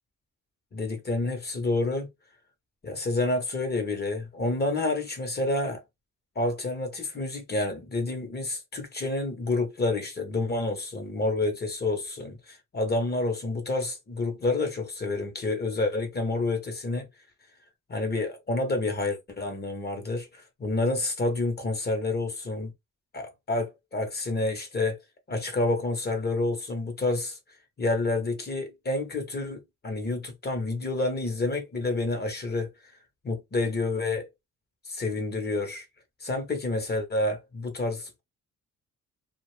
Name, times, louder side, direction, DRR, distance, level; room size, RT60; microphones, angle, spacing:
voice 1, 0.7-2.1 2.8-5.8 6.3-17.1 17.9-22.7 23.1-25.0 25.3-27.4 27.8-32.7 33.2-34.3 34.9-35.8 36.2-38.2, left 2 dB, 35° left, 1.2 m, -29 dB
2.5 x 2.5 x 3.3 m
cardioid pair, 90°, 30 cm